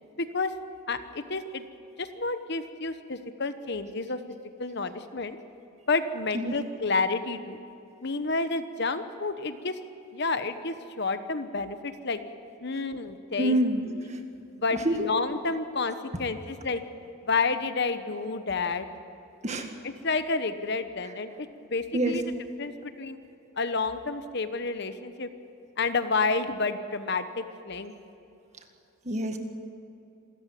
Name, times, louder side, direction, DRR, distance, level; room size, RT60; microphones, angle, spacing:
voice 1, 0.2-0.5 0.9-1.6 2.0-4.2 4.6-5.4 5.9-7.6 8.0-9.8 10.1-12.2 12.6-13.5 14.6-16.8 17.2-18.9 19.8-22.2 22.6-23.2 23.6-25.3 25.8-27.9, left 3 dB, 50° left, 10 dB, 1.1 m, -30 dB
voice 2, 13.4-14.2 14.7-15.1 19.4-19.7 21.9-22.2 29.1-29.4, right 1 dB, 30° right, 5 dB, 1.9 m, -27 dB
27.5 x 14.5 x 9.4 m, 2.8 s
head